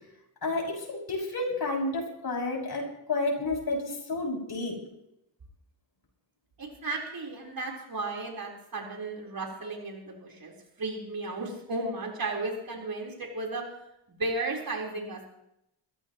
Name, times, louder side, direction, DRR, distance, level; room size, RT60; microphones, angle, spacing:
voice 1, 0.4-4.8, left 2 dB, 60° left, 0 dB, 6.7 m, -31 dB
voice 2, 6.6-13.7 14.2-15.3, right 2 dB, 55° right, 0 dB, 4.4 m, -34 dB
22.5 x 15.5 x 3.1 m, 0.81 s
cardioid pair, 65°, 43 cm